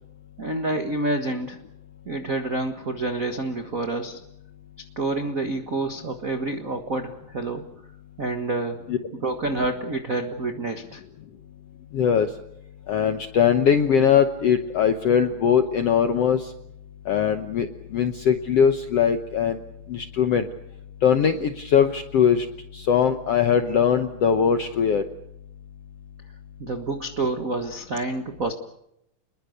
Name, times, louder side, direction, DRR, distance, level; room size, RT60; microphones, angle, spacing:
voice 1, 0.4-1.6 2.0-4.2 5.0-7.6 8.2-8.8 9.2-11.0 26.6-28.5, right 2 dB, 60° right, 6 dB, 0.8 m, -28 dB
voice 2, 11.9-12.3 12.9-16.4 17.1-17.7 17.9-19.6 19.9-20.5 21.0-22.5 22.7-25.0, left 7 dB, 70° left, 7 dB, 1.5 m, -20 dB
29.5 x 21.5 x 6.6 m, 0.77 s
omnidirectional pair, 4.2 m